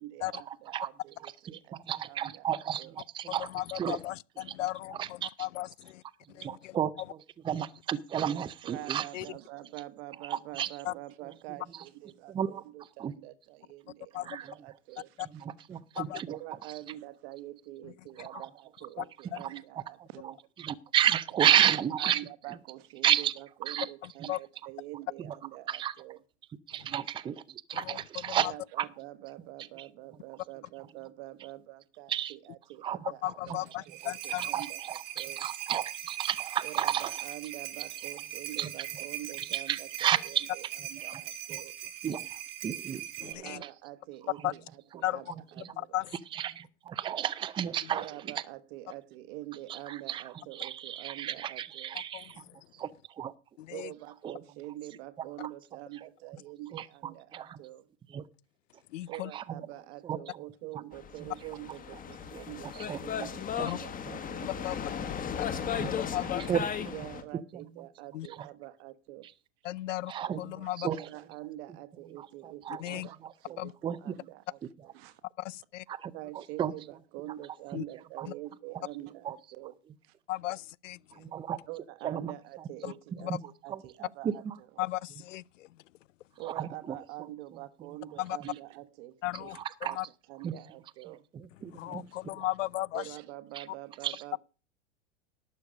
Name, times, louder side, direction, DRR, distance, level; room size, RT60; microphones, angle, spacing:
voice 1, 0.0-3.0 8.6-15.4 15.7-15.8 16.3-20.4 22.0-26.2 28.4-35.4 36.6-41.7 43.4-46.0 47.9-52.0 53.7-57.9 59.1-65.6 66.4-66.6 66.9-69.3 70.8-73.7 74.0-75.2 76.1-79.8 80.0-80.1 81.7-84.7 86.4-89.6 89.8-90.0 90.3-91.2 92.9-94.4, right 16 dB, 55° right, 1.3 m, -46 dB
voice 2, 1.9-3.5 3.7-4.0 5.0-5.3 6.4-7.2 7.4-9.1 10.3-10.7 12.3-12.6 13.0-13.1 14.3-14.5 15.7-16.4 18.2-18.5 19.4-19.5 20.6-22.2 23.0-23.3 23.7-23.9 24.2-24.3 25.2-25.3 25.7-25.9 26.7-28.5 28.8-28.9 32.1-32.3 32.8-33.1 34.5-37.1 38.6-38.7 39.5-40.5 41.0-41.1 41.5-41.6 42.0-42.2 42.6-43.5 46.3-48.3 49.7-50.2 50.5-52.4 52.8-52.9 53.2-53.3 54.2-54.4 56.7-56.9 57.3-57.6 58.1-58.2 59.3-59.4 60.0-60.2 62.3-62.4 62.9-63.0 63.6-63.7 65.6-66.9 67.5-67.6 70.1-71.0 72.2-74.1 75.9-76.7 78.2-78.3 79.2-79.3 81.1-81.6 82.0-82.3 83.7-83.8 84.2-84.5 86.5-87.0 89.5-90.0 90.4-90.5 91.3-92.0 93.5-93.6 94.0-94.2, right 10 dB, 15° right, 0.5 m, -32 dB
voice 3, 3.4-6.0 6.3-6.8 9.1-9.3 10.8-10.9 14.1-14.4 15.2-15.3 16.0-16.2 19.0-19.1 19.3-19.4 24.0-24.4 27.7-28.5 33.2-34.5 43.2-43.6 44.4-44.5 45.0-45.2 45.8-46.1 47.8-47.9 52.1-52.2 53.6-53.9 58.9-59.3 63.6-63.8 64.4-64.8 65.4-65.5 65.9-66.4 68.1-68.3 69.6-70.1 70.4-70.9 72.8-73.1 73.6-73.7 75.4-75.8 77.7-77.8 78.3-78.4 80.3-81.3 82.8-82.9 83.2-83.4 84.8-85.7 88.2-88.4 89.2-90.1 91.7-93.0, left 15 dB, 90° left, 0.5 m, -36 dB
sound 1, 33.7-43.3, right 12 dB, 75° right, 2.5 m, -40 dB
sound 2, 60.9-67.2, left 8 dB, 20° left, 1.3 m, -36 dB
12.0 x 6.9 x 6.4 m
hypercardioid pair, 115°, 36 cm